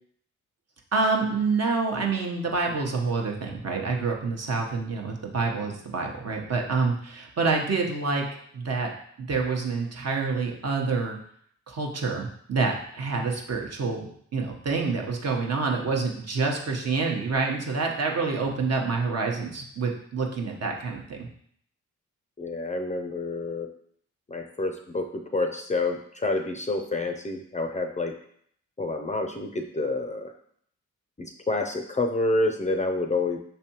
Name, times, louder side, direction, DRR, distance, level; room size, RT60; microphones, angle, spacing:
voice 1, 0.9-8.2 8.5-8.9 9.2-11.2 11.7-14.0 14.3-21.3, right 4 dB, 50° right, 1 dB, 1.0 m, -27 dB
voice 2, 22.4-23.7 24.3-28.1 28.8-30.3 31.2-33.4, left 2 dB, 20° left, 4 dB, 0.5 m, -28 dB
5.5 x 3.3 x 2.9 m, 0.65 s
cardioid pair, 60°, 32 cm